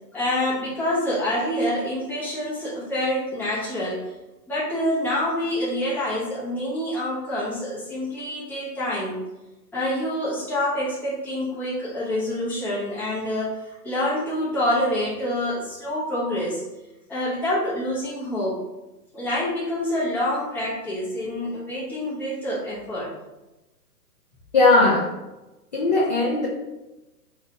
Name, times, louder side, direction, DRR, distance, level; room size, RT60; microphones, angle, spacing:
voice 1, 0.1-4.1 4.5-9.2 9.7-16.6 17.1-18.6 19.1-23.1, left 1 dB, 5° left, -9 dB, 0.7 m, -27 dB
voice 2, 24.5-25.1 25.7-26.5, left 2 dB, 30° left, -5 dB, 0.4 m, -18 dB
4.7 x 2.9 x 2.7 m, 1.0 s
hypercardioid pair, 140°, 49 cm